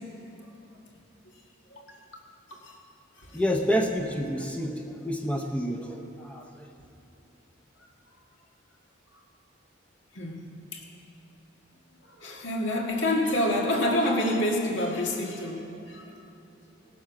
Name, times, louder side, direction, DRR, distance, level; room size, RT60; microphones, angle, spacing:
voice 1, 3.3-6.7, equal, 5° left, 2 dB, 0.7 m, -29 dB
voice 2, 12.0-16.1, left 1 dB, 65° left, 0 dB, 1.8 m, -28 dB
17.5 x 7.2 x 5.8 m, 2.9 s
head